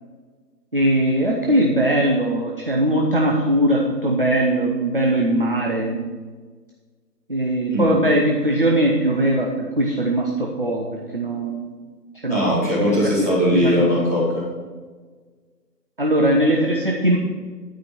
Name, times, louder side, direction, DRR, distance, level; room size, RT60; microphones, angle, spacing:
voice 1, 0.7-6.2 7.3-11.7 12.2-12.4 13.5-13.9 16.0-17.2, right 1 dB, 35° right, -1 dB, 0.8 m, -20 dB
voice 2, 12.3-14.5, left 1 dB, 10° left, -11 dB, 1.1 m, -20 dB
11.5 x 5.1 x 5.9 m, 1.5 s
figure-of-eight pair, 160°, 49 cm